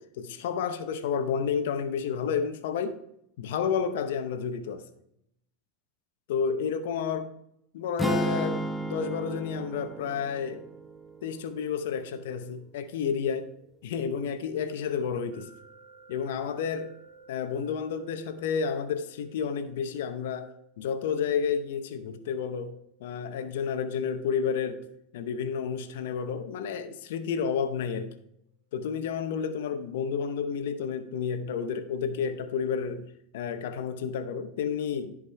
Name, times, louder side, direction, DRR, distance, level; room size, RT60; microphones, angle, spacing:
voice 1, 0.0-3.0 3.4-4.8 6.3-7.3 7.7-10.6 11.2-13.5 13.8-15.5 16.1-16.9 17.3-24.8 25.1-28.1 28.7-35.2, left 6 dB, 75° left, 0.8 m, -31 dB
sound 1, 8.0-12.2, right 1 dB, ahead, 0.7 m, -33 dB
Pot Lid Resonating, 15.3-28.2, right 4 dB, 65° right, 2.0 m, -59 dB
14.0 x 5.1 x 3.3 m
hypercardioid pair, 100°, 0 cm